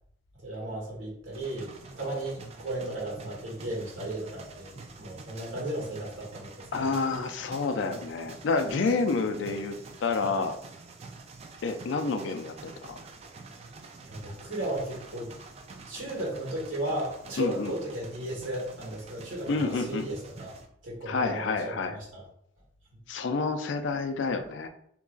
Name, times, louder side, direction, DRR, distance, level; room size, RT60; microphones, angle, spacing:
voice 1, 0.4-6.9 14.0-15.3 15.9-20.5 20.8-21.7 22.1-22.2, right 1 dB, 90° right, -4 dB, 1.5 m, -35 dB
sound 1, 1.3-20.7, right 3 dB, 35° right, 0.3 m, -47 dB
voice 2, 6.7-10.6 11.6-13.0 17.4-17.7 19.5-20.1 21.1-22.0 23.1-24.7, left 4 dB, 70° left, 8 dB, 0.4 m, -29 dB
3.8 x 2.9 x 2.3 m, 0.69 s
head